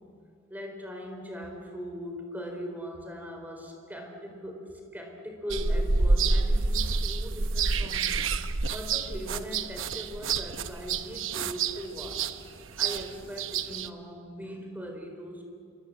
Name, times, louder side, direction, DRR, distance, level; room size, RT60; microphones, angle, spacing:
voice 1, 0.5-12.3 12.7-15.4, equal, 10° right, 3 dB, 4.2 m, -40 dB
sound 1, 5.5-13.9, right 4 dB, 65° right, 0.9 m, -28 dB
28.5 x 23.5 x 7.7 m, 2.3 s
head